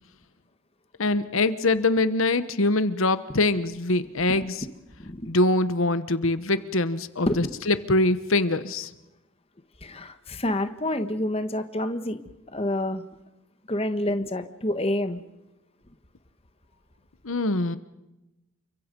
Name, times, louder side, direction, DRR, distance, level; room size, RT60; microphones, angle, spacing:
voice 1, 1.0-4.6 5.3-8.9 17.2-17.8, left 2 dB, 70° left, 13 dB, 1.1 m, -23 dB
voice 2, 9.8-12.2 12.5-13.0 13.7-15.2, left 1 dB, 25° left, 9 dB, 1.3 m, -28 dB
29.5 x 24.5 x 5.4 m, 0.96 s
head